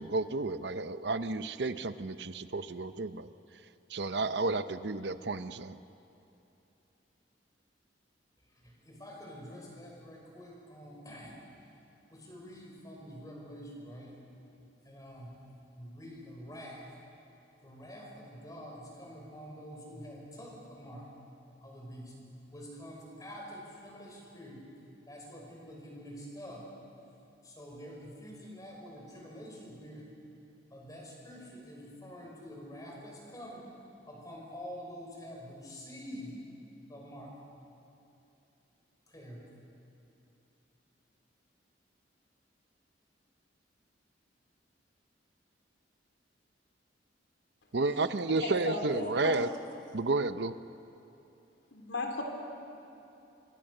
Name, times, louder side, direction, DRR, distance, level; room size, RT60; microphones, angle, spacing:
voice 1, 0.0-3.3 3.9-5.8 47.7-49.5 49.9-50.6, right 3 dB, 65° right, 12 dB, 0.7 m, -31 dB
voice 2, 8.5-11.3 12.1-14.2 14.8-16.9 17.6-21.1 21.6-22.1 22.5-24.6 25.1-26.7 27.4-30.1 30.7-33.7 34.0-36.4 36.9-37.3 39.1-39.4, equal, 20° left, -2 dB, 5.8 m, -47 dB
voice 3, 48.3-49.6 51.7-52.2, left 2 dB, 80° left, 3 dB, 3.5 m, -35 dB
26.0 x 25.0 x 6.7 m, 2.9 s
head